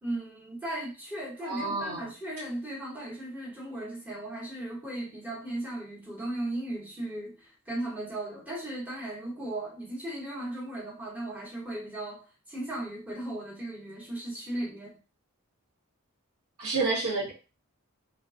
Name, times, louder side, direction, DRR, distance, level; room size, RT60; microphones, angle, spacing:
voice 1, 0.0-15.0, right 1 dB, 5° right, -6 dB, 0.9 m, -36 dB
voice 2, 1.4-2.1 16.6-17.3, right 3 dB, 85° right, -4 dB, 1.2 m, -29 dB
3.1 x 2.2 x 2.4 m, 0.32 s
head